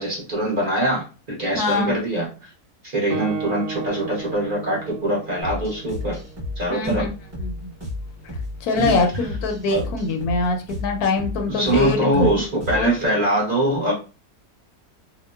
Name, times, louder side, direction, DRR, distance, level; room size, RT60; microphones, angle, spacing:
voice 1, 0.0-2.5 2.9-6.2 6.6-7.1 8.8-9.0 9.7-9.8 11.5-13.9, right 1 dB, 40° right, -4 dB, 0.9 m, -23 dB
voice 2, 1.6-2.0 6.7-7.1 7.4-7.7 8.6-12.3 12.7-12.9, left 3 dB, 80° left, 4 dB, 1.1 m, -23 dB
Guitar, 3.1-6.8, right 6 dB, 80° right, 1.2 m, -33 dB
sound 1, 5.4-13.1, left 2 dB, 15° right, 0.7 m, -33 dB
2.8 x 2.1 x 2.2 m, 0.32 s
omnidirectional pair, 1.6 m